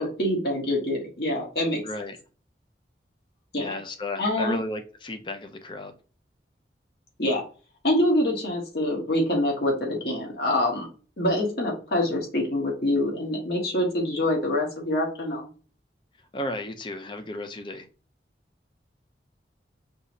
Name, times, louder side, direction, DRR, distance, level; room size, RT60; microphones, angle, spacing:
voice 1, 0.0-1.8 3.5-3.8 4.2-4.6 7.2-7.4 7.8-10.9 11.2-15.5, left 1 dB, 65° left, 1.5 m, -25 dB
voice 2, 1.8-2.2 3.6-5.9 16.3-17.9, left 1 dB, 25° left, 0.5 m, -34 dB
5.4 x 3.0 x 2.7 m
head